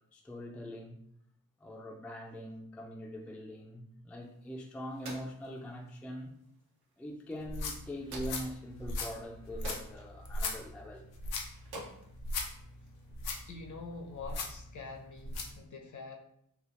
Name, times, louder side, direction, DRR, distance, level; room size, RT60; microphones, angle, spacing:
voice 1, 0.1-1.0 1.6-6.3 7.0-11.1, equal, 5° left, 0.3 m, -43 dB
sound 1, 4.2-13.2, right 1 dB, 85° right, 0.8 m, -52 dB
sound 2, 7.4-15.6, left 2 dB, 90° left, 0.5 m, -39 dB
voice 2, 13.3-16.2, left 4 dB, 55° left, 0.7 m, -45 dB
3.3 x 2.3 x 2.5 m
supercardioid pair, 50°, 37 cm